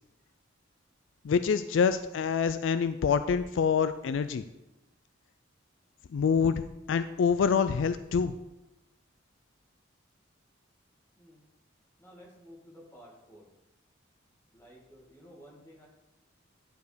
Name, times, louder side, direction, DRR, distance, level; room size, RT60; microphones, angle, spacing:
voice 1, 1.2-4.4 6.1-8.3, left 6 dB, 70° left, 11 dB, 0.3 m, -26 dB
voice 2, 12.0-13.5 14.5-15.9, equal, 15° left, -4 dB, 2.1 m, -53 dB
10.5 x 4.7 x 5.0 m, 0.96 s
head